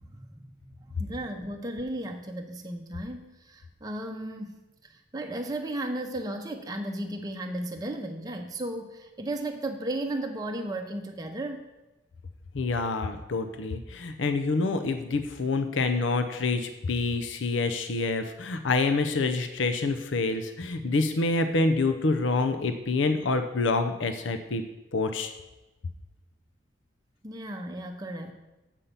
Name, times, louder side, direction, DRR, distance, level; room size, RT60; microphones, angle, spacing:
voice 1, 0.2-11.6 27.2-28.3, right 1 dB, 20° right, 3 dB, 0.7 m, -35 dB
voice 2, 12.5-24.6 24.9-25.3, left 3 dB, 85° left, 8 dB, 0.6 m, -27 dB
7.3 x 5.6 x 6.7 m, 1.0 s
head